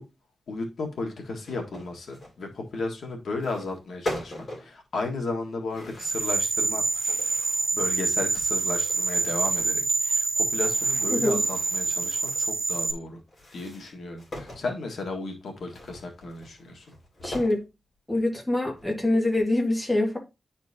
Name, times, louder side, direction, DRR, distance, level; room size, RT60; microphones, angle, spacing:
voice 1, 0.5-6.8 7.7-13.2 13.5-16.9, left 3 dB, 80° left, 1.6 m, -34 dB
sound 1, 1.4-2.4 3.3-3.8 4.0-4.7 5.7-6.5 6.8-7.7 8.2-9.9 10.5-12.5 13.3-14.7 15.7-17.6 18.2-18.3 18.7-19.5, left 1 dB, 40° left, 3.1 m, -41 dB
sound 2, 6.0-12.9, right 4 dB, 40° right, 0.9 m, -26 dB
voice 2, 11.1-11.4 17.2-17.6 18.1-20.2, left 1 dB, 10° left, 1.7 m, -24 dB
10.5 x 4.3 x 2.8 m
wide cardioid pair, 165°, 0 cm